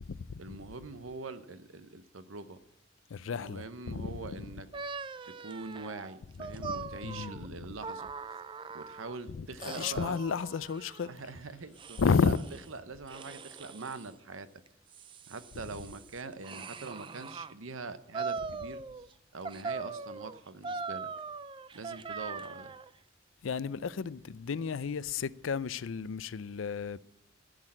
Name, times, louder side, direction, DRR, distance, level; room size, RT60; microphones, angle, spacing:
voice 1, 0.4-2.6 3.2-4.7 5.2-8.1 8.7-10.2 11.1-12.3 12.7-14.5 15.3-21.1 21.7-22.7, right 3 dB, 90° right, 0.9 m, -43 dB
voice 2, 3.1-4.4 6.6-6.7 7.0-7.4 9.3-11.1 12.0-12.4 23.4-27.0, left 5 dB, 80° left, 0.5 m, -32 dB
sound 1, 4.7-9.2 9.6-11.1 11.8-12.7 13.1-14.1 14.7-17.5 18.1-19.1 19.4-22.9, right 4 dB, 25° right, 0.4 m, -41 dB
14.5 x 6.4 x 8.8 m
head